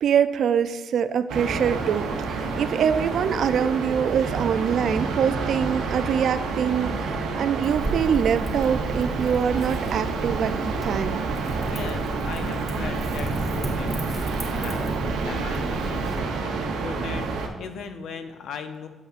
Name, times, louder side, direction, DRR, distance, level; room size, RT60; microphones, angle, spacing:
voice 1, 0.0-11.3, right 8 dB, 65° right, 12 dB, 0.3 m, -24 dB
sound 1, 1.3-17.5, right 4 dB, 90° right, 0.7 m, -29 dB
sound 2, 2.3-8.7 9.2-9.8, right 1 dB, 40° right, 1.5 m, -43 dB
Wind / Fire, 7.6-16.2, right 2 dB, 20° right, 2.1 m, -32 dB
voice 2, 11.6-18.9, left 5 dB, 70° left, 8 dB, 0.5 m, -38 dB
9.1 x 5.4 x 2.4 m, 1.3 s
cardioid pair, 90°, 0 cm